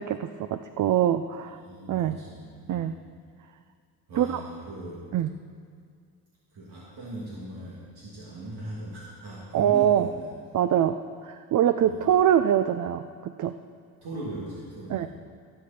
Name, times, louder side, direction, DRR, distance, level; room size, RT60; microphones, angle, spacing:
voice 1, 0.0-1.6 1.9-2.2 2.7-2.9 4.2-4.3 5.1-5.3 9.5-10.1 10.5-13.5 14.9-15.1, right 10 dB, 50° right, 10 dB, 0.5 m, -24 dB
voice 2, 1.4-3.0 4.1-5.2 6.5-10.3 11.8-12.1 14.0-15.1, right 1 dB, 75° right, -7 dB, 2.6 m, -39 dB
17.5 x 8.5 x 4.3 m, 2.1 s
cardioid pair, 105°, 40 cm